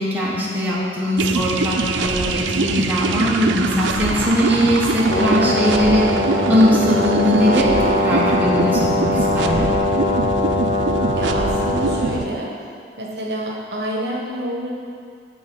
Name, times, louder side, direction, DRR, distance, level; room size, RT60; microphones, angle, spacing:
voice 1, 0.0-6.1 6.5-9.7, equal, 10° right, -8 dB, 1.5 m, -20 dB
sound 1, 1.2-12.2, right 3 dB, 85° right, 0.5 m, -23 dB
Brass instrument, 5.1-12.1, left 2 dB, 35° left, 0.6 m, -21 dB
voice 2, 11.1-12.5 13.0-14.7, right 1 dB, 65° right, -3 dB, 1.2 m, -28 dB
9.2 x 4.0 x 7.1 m, 2.3 s
head